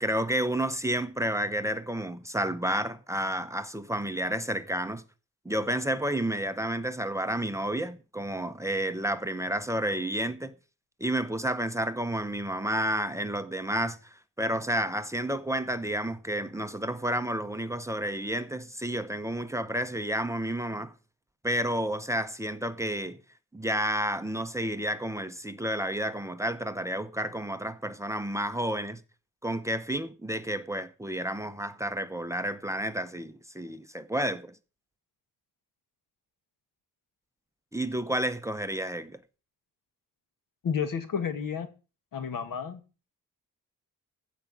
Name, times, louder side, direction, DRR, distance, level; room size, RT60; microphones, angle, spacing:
voice 1, 0.0-5.0 5.4-10.5 11.0-20.9 21.4-23.2 23.5-29.0 29.4-34.5 37.7-39.2, right 1 dB, 10° right, 0.7 m, -30 dB
voice 2, 40.6-41.7 42.1-42.8, left 7 dB, 80° left, 2.0 m, -31 dB
15.0 x 5.1 x 8.5 m
wide cardioid pair, 150°, 33 cm